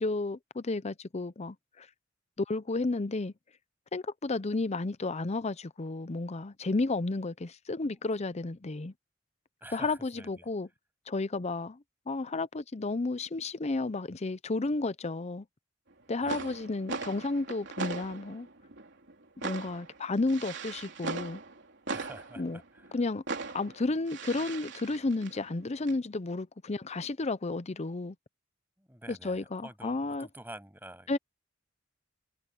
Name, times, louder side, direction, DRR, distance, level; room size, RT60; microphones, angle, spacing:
voice 1, 0.0-1.9 2.4-3.3 3.9-8.9 9.7-10.7 11.1-15.4 16.1-18.5 19.4-21.4 22.4-22.6 22.9-23.2 23.5-28.2 29.1-30.3 31.1-31.2, left 3 dB, 35° left, 0.6 m, -32 dB
voice 2, 9.6-10.4 16.2-16.5 21.9-22.9 28.8-31.2, right 1 dB, 10° right, 7.8 m, -48 dB
sound 1, 15.9-16.0 16.2-23.0 23.3-26.0, right 4 dB, 60° right, 3.7 m, -40 dB
head